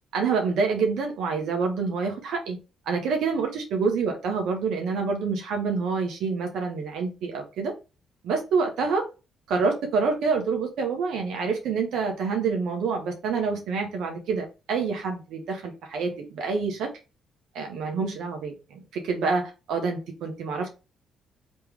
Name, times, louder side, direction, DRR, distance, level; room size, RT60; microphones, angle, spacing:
voice 1, 0.1-2.6 2.9-7.7 8.2-9.0 9.5-16.9 17.5-20.7, right 4 dB, 80° right, 1.1 m, -27 dB
3.4 x 3.1 x 3.3 m
cardioid pair, 90°, 0 cm